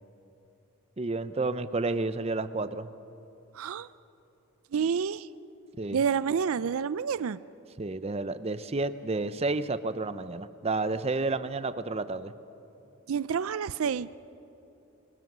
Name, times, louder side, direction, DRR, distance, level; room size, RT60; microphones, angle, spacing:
voice 1, 1.0-2.9 5.8-6.0 7.8-12.3, right 3 dB, 30° right, 13 dB, 0.6 m, -30 dB
voice 2, 3.5-3.9 4.7-5.3 5.9-7.4 13.1-14.1, right 6 dB, 75° right, 17 dB, 0.4 m, -28 dB
27.0 x 21.0 x 6.1 m, 2.9 s
head